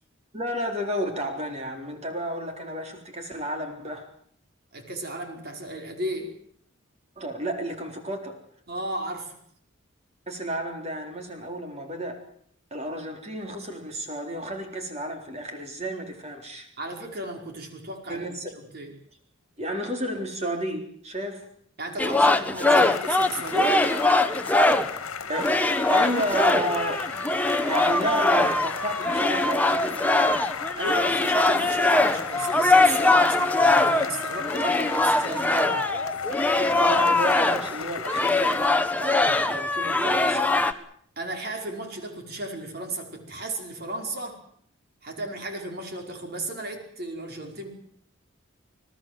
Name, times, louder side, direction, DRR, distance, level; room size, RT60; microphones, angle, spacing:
voice 1, 0.3-4.1 7.2-8.3 10.3-12.2 12.7-16.7 18.1-18.5 19.6-21.5 22.1-22.9 25.3-25.6 25.9-27.1 27.6-30.0 36.5-40.4, right 1 dB, 30° right, 4 dB, 3.9 m, -32 dB
voice 2, 4.7-6.3 8.7-9.4 16.8-18.9 21.8-23.8 30.7-35.8 41.2-44.4 45.0-47.7, right 1 dB, 45° right, 4 dB, 4.9 m, -34 dB
sound 1, 22.0-25.0 25.3-37.8 38.0-40.7, left 2 dB, 5° left, 1.2 m, -22 dB
sound 2, 22.7-38.7, left 6 dB, 75° left, 1.7 m, -35 dB
28.0 x 18.5 x 7.7 m, 0.63 s
head